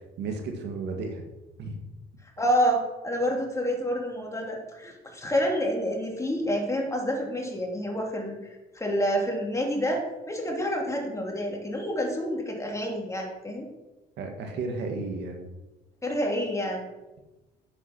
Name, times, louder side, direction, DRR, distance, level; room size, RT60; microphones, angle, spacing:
voice 1, 0.2-1.2 1.6-1.8 14.2-15.4, right 3 dB, 70° right, 4 dB, 1.8 m, -33 dB
voice 2, 2.4-8.4 8.7-13.6 16.0-16.9, equal, 15° left, 0 dB, 2.9 m, -28 dB
8.0 x 7.4 x 6.1 m, 1.1 s
cardioid pair, 90°, 19 cm